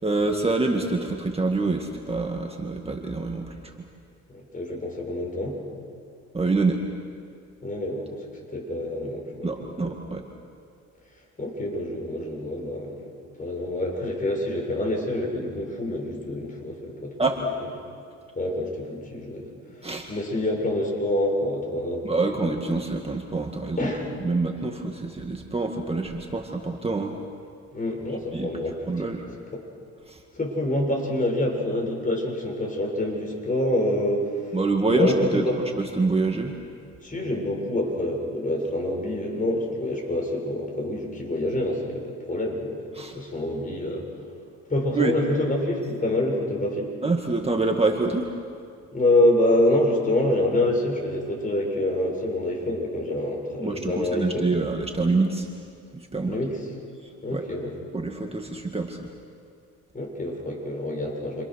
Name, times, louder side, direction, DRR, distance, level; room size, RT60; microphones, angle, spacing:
voice 1, 0.0-3.7 6.3-6.8 9.4-10.2 17.2-17.4 19.8-20.1 22.0-23.9 24.2-27.2 28.3-28.5 28.9-29.3 30.1-30.2 34.5-35.4 35.8-36.5 42.9-43.2 45.0-45.2 47.0-48.4 53.6-55.5 55.9-56.4 57.0-57.5 57.9-59.1, right 3 dB, 20° right, 2 dB, 2.0 m, -26 dB
voice 2, 4.3-5.6 7.6-8.2 8.5-9.7 11.4-13.1 13.4-17.2 18.4-19.5 19.8-22.2 23.8-24.1 27.7-29.1 29.5-29.6 30.3-34.5 34.9-35.6 37.0-44.1 44.7-46.9 48.9-54.5 56.2-56.6 57.2-57.7 59.9-61.4, left 1 dB, 25° left, 0 dB, 7.0 m, -26 dB
30.0 x 26.5 x 6.5 m, 2.3 s
cardioid pair, 90°, 30 cm